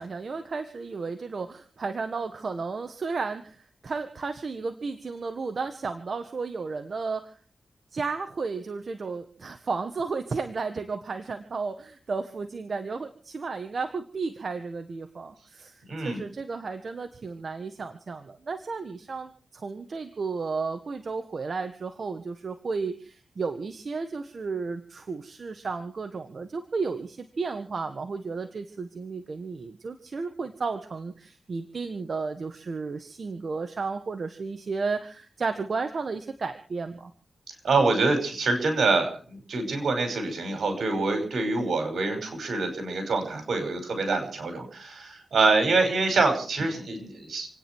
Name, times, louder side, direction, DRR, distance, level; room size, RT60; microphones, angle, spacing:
voice 1, 0.0-7.4 7.9-37.1, right 4 dB, 60° right, 7 dB, 1.5 m, -33 dB
voice 2, 15.9-16.2 37.6-47.5, right 3 dB, 75° right, 6 dB, 5.5 m, -25 dB
29.0 x 9.8 x 4.6 m, 0.42 s
cardioid pair, 75°, 0 cm